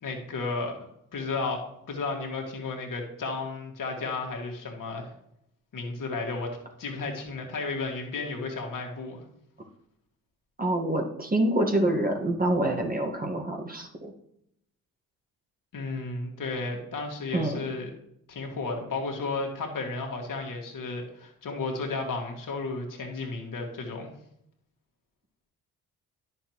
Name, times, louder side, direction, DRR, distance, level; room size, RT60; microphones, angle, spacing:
voice 1, 0.0-0.9 1.1-5.1 5.7-9.2 15.7-17.9 18.3-24.1, left 3 dB, 55° left, 1 dB, 2.3 m, -33 dB
voice 2, 10.6-14.1 17.3-17.6, right 1 dB, 20° right, 2 dB, 1.6 m, -26 dB
10.5 x 6.6 x 3.1 m, 0.75 s
hypercardioid pair, 50°, 40 cm